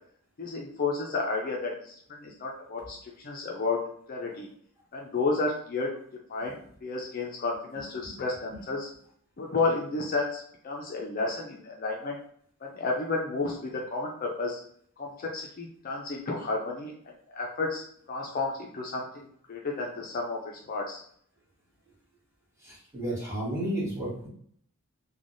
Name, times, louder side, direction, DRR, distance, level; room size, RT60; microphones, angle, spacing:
voice 1, 0.4-3.8 4.1-4.5 4.9-5.9 6.3-8.9 9.4-12.2 12.6-14.6 15.0-16.9 17.3-17.8 18.1-20.4 20.7-21.0, left 3 dB, 40° left, -1 dB, 0.4 m, -31 dB
voice 2, 22.6-24.3, right 1 dB, 10° right, -7 dB, 1.2 m, -32 dB
3.3 x 2.2 x 2.5 m, 0.64 s
head